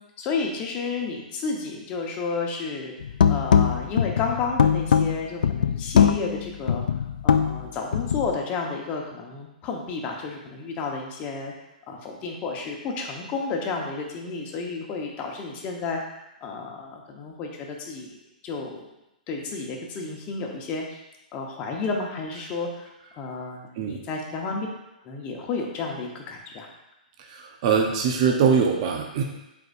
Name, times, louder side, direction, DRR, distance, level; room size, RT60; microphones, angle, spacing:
voice 1, 0.2-2.9 3.3-6.8 7.2-11.5 11.9-16.0 16.4-18.2 18.4-18.9 19.3-21.0 21.3-22.9 23.2-24.7 25.0-26.7, left 4 dB, 30° left, 0 dB, 1.2 m, -31 dB
sound 1, 3.0-8.3, left 7 dB, 75° left, 0.4 m, -21 dB
voice 2, 27.2-29.2, right 6 dB, 45° right, 2 dB, 0.9 m, -22 dB
7.8 x 4.8 x 2.6 m, 0.93 s
hypercardioid pair, 130°, 5 cm